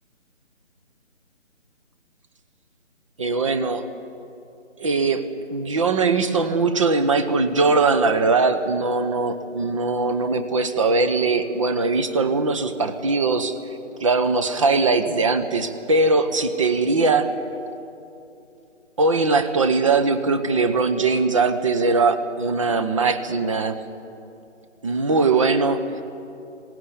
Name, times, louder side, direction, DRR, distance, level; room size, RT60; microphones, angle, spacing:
voice 1, 3.2-3.8 4.8-5.2 5.5-13.6 14.0-17.3 19.0-23.8 24.8-26.0, right 3 dB, 25° right, 9 dB, 1.0 m, -21 dB
20.5 x 18.0 x 9.8 m, 2.7 s
figure-of-eight pair, 160°, 37 cm